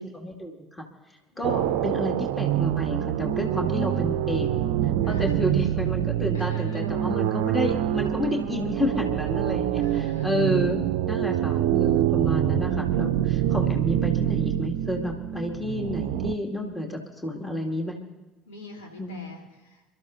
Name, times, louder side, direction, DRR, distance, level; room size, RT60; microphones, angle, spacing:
voice 1, 0.1-0.8 1.4-4.5 5.1-18.0 19.0-19.2, left 1 dB, 15° left, 1 dB, 2.3 m, -30 dB
voice 2, 1.3-1.6 5.0-5.4 6.3-6.9 9.8-10.5 18.5-19.8, left 1 dB, 75° left, 0 dB, 3.6 m, -44 dB
Wet Ring Sweeps, 1.4-16.4, right 12 dB, 65° right, 0.5 m, -25 dB
28.5 x 13.5 x 2.7 m, 1.1 s
figure-of-eight pair, 60°, 0 cm